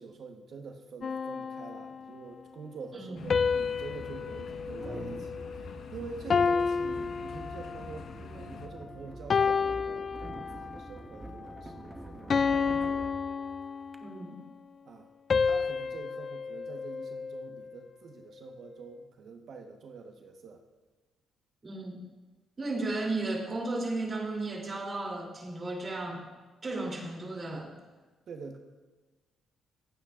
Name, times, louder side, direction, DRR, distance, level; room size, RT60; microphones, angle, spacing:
voice 1, 0.0-13.1 14.8-15.1 15.4-20.6 28.3-28.6, right 4 dB, 60° right, 3 dB, 1.2 m, -46 dB
sound 1, 1.0-2.3 3.3-5.8 6.3-8.0 8.6-8.8 9.3-10.8 11.3-11.6 12.3-14.2 15.3-17.7, left 5 dB, 45° left, 0.4 m, -31 dB
sound 2, 2.3-2.4 3.4-14.0, right 1 dB, 15° right, 1.2 m, -47 dB
sound 3, 3.1-8.7, left 5 dB, 70° left, 1.2 m, -46 dB
voice 2, 14.0-14.3 21.6-22.0 22.6-26.2 26.6-27.7, right 2 dB, 35° right, -1 dB, 3.1 m, -34 dB
25.0 x 9.2 x 2.5 m, 1.2 s
cardioid pair, 90°, 0 cm